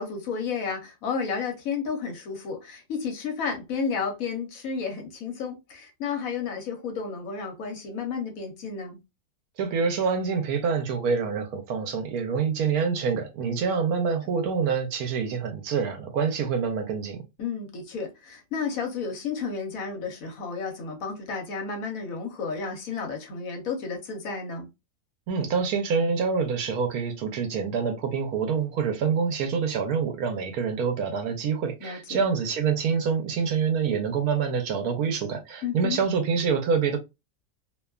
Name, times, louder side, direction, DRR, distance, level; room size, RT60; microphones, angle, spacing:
voice 1, 0.0-9.0 13.4-13.6 17.4-24.7 31.8-32.2 35.6-36.0, left 5 dB, 65° left, 1.2 m, -32 dB
voice 2, 9.6-17.2 25.3-37.0, right 6 dB, 75° right, 1.1 m, -26 dB
2.8 x 2.2 x 2.2 m
omnidirectional pair, 1.6 m